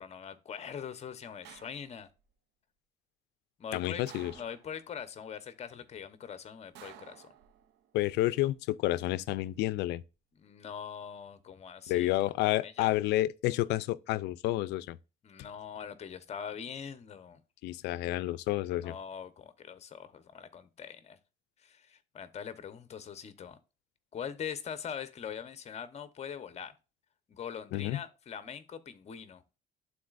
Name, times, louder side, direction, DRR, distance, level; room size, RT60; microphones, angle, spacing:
voice 1, 0.0-2.1 3.6-7.3 10.4-12.1 12.6-12.9 15.2-17.4 18.8-21.2 21.6-23.6 24.1-26.7 27.3-29.4, left 7 dB, 40° left, 1.0 m, -42 dB
sound 1, 1.4-2.2 4.1-5.0 6.7-7.9 9.3-9.8, right 11 dB, 85° right, 0.7 m, -53 dB
voice 2, 3.7-4.3 7.9-10.0 11.9-15.0 17.6-19.0 27.7-28.0, left 16 dB, 85° left, 0.5 m, -30 dB
11.5 x 4.0 x 2.5 m
cardioid pair, 110°, 17 cm